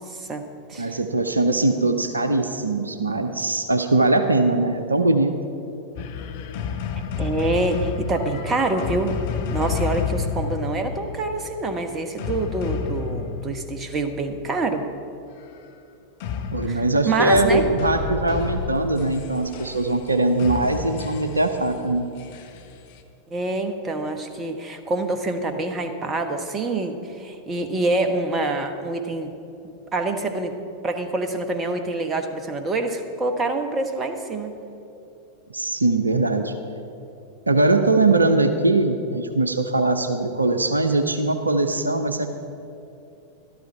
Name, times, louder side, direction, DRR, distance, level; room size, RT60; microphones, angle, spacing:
voice 1, 0.0-0.9 7.2-9.2 9.5-14.8 16.7-17.7 23.3-29.3 29.9-30.5 30.8-34.5, right 2 dB, 20° right, 6 dB, 1.1 m, -26 dB
voice 2, 0.8-5.3 16.5-22.1 35.5-36.5 37.5-42.3, right 2 dB, 80° right, 7 dB, 0.7 m, -21 dB
sound 1, 5.9-14.3 16.2-23.0, left 6 dB, 50° left, 1.0 m, -30 dB
13.0 x 12.5 x 4.6 m, 2.8 s
figure-of-eight pair, 90°, 0 cm